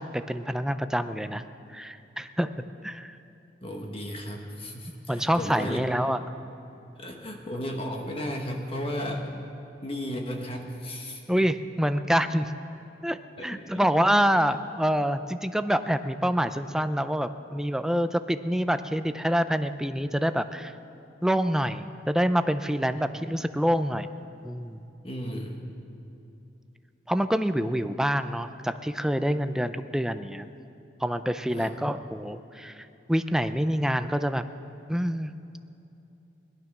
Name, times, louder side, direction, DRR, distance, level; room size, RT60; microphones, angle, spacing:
voice 1, 0.0-1.4 1.7-2.5 2.8-3.2 5.1-6.3 11.3-12.5 13.0-13.2 13.4-20.7 21.2-24.1 24.4-24.8 27.1-30.5 31.0-34.4 34.9-35.3, equal, 5° right, 10 dB, 0.4 m, -26 dB
voice 2, 3.6-6.0 7.0-9.3 9.8-11.2 13.4-13.8 22.9-23.1 25.0-25.6 31.5-31.7, equal, 35° left, 2 dB, 1.2 m, -34 dB
18.5 x 11.5 x 6.0 m, 2.9 s
head